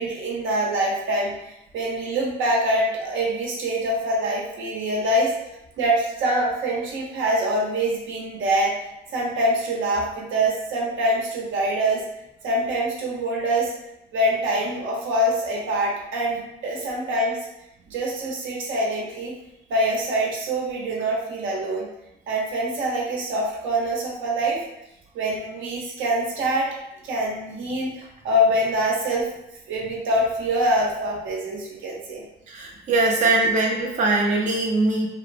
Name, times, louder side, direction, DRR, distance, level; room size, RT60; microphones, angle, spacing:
voice 1, 0.0-5.3 5.8-8.7 9.1-12.0 12.4-13.7 14.1-17.4 17.9-19.3 19.7-21.9 22.3-24.6 25.1-26.7 27.0-29.3 29.7-32.2 33.2-33.3, right 1 dB, 80° right, -3 dB, 0.8 m, -24 dB
voice 2, 32.5-35.1, right 2 dB, 40° right, -1 dB, 0.4 m, -21 dB
2.8 x 2.0 x 2.5 m, 0.85 s
cardioid pair, 90°, 20 cm